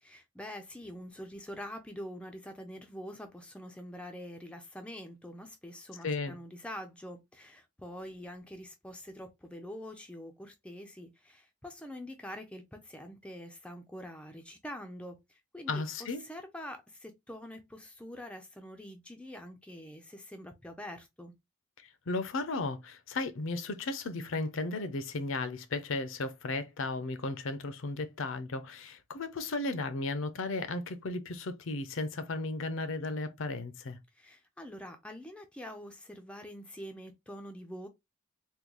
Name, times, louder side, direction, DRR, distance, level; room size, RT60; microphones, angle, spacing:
voice 1, 0.0-21.3 34.1-37.9, equal, 5° left, 0.3 m, -45 dB
voice 2, 6.0-6.4 15.7-16.2 21.8-34.0, left 3 dB, 60° left, 0.5 m, -35 dB
3.6 x 2.2 x 3.0 m
head